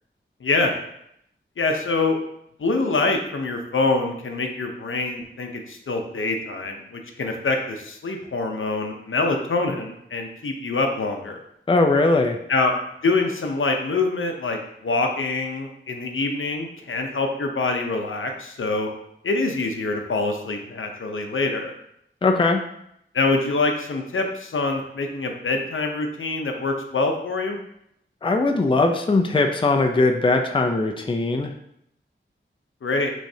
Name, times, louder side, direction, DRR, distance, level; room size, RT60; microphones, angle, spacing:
voice 1, 0.4-0.7 1.6-2.2 2.6-11.4 12.5-12.7 13.0-18.9 19.2-21.7 23.1-27.6 32.8-33.1, left 3 dB, 75° left, 3 dB, 0.7 m, -25 dB
voice 2, 11.7-12.4 22.2-22.6 28.2-31.5, left 3 dB, 25° left, 4 dB, 0.4 m, -20 dB
6.3 x 3.1 x 2.7 m, 0.75 s
wide cardioid pair, 75°, 21 cm